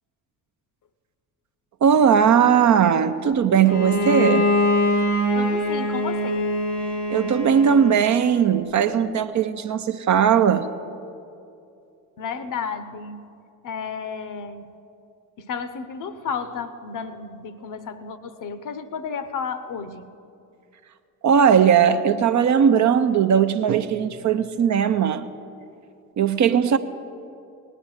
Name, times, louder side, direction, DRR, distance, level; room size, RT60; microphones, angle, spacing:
voice 1, 1.8-4.5 7.1-10.7 21.2-25.3 26.2-26.8, right 8 dB, 40° right, 9 dB, 0.7 m, -18 dB
Bowed string instrument, 3.7-8.4, left 1 dB, 80° left, 1.8 m, -23 dB
voice 2, 5.3-6.5 12.2-13.4 13.6-14.7 15.4-20.1, left 5 dB, 40° left, 13 dB, 0.9 m, -32 dB
18.5 x 9.9 x 4.8 m, 2.6 s
figure-of-eight pair, 50°, 46 cm